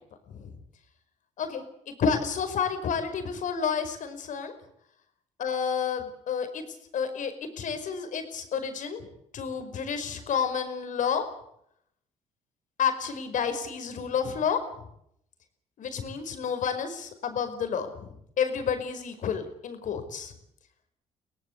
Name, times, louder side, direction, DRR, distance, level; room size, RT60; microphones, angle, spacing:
voice 1, 1.4-4.5 5.4-6.6 6.9-9.1 9.3-11.2 12.8-14.6 15.8-20.3, left 7 dB, 65° left, 8 dB, 5.1 m, -30 dB
24.0 x 18.0 x 8.1 m, 0.73 s
supercardioid pair, 70°, 14 cm